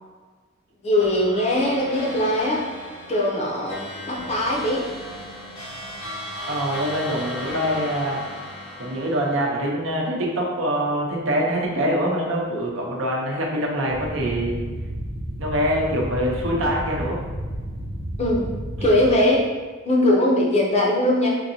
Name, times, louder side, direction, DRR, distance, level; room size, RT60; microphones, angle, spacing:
voice 1, 0.8-2.6 3.1-4.9 18.2-18.4 18.8-19.5 19.8-21.3, left 1 dB, 30° left, -3 dB, 0.6 m, -20 dB
sound 1, 1.0-10.6, left 1 dB, 85° left, 1.0 m, -36 dB
voice 2, 6.5-8.2 8.8-14.6 15.4-17.2, equal, 65° right, -2 dB, 0.7 m, -24 dB
sound 2, 13.9-19.2, equal, 30° right, 0.5 m, -32 dB
4.5 x 2.7 x 2.7 m, 1.4 s
head